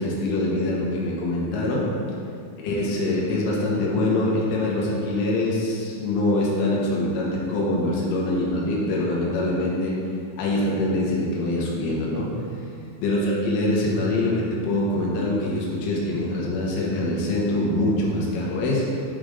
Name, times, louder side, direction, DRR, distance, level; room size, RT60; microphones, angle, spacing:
voice 1, 0.0-1.9 2.6-9.9 10.4-12.3 13.0-18.8, left 1 dB, 80° left, -4 dB, 3.8 m, -24 dB
11.5 x 5.0 x 3.8 m, 2.4 s
omnidirectional pair, 5.7 m